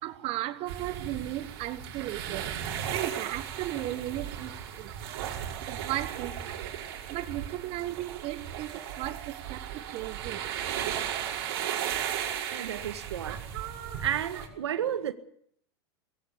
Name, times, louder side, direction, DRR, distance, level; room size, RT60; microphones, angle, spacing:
voice 1, 0.0-2.5 2.9-4.9 5.6-6.7 7.1-10.5, right 15 dB, 45° right, 1.5 m, -36 dB
sound 1, 0.7-14.5, right 9 dB, 60° right, 5.5 m, -36 dB
voice 2, 12.5-13.5 14.0-15.1, right 10 dB, 80° right, 1.8 m, -32 dB
21.0 x 16.0 x 8.5 m
hypercardioid pair, 110°, 14 cm